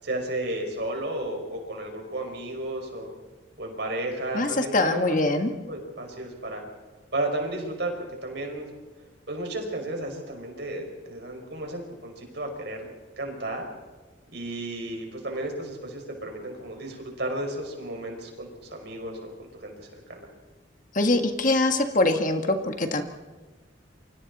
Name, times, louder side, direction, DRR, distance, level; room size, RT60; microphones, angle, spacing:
voice 1, 0.0-3.1 3.6-5.3 5.7-6.6 7.1-8.7 9.3-12.9 13.2-13.7 14.3-20.3, right 1 dB, 55° right, 2 dB, 5.8 m, -33 dB
voice 2, 4.3-5.5 20.9-23.0, left 2 dB, 40° left, 6 dB, 1.7 m, -23 dB
29.0 x 25.0 x 4.2 m, 1.3 s
head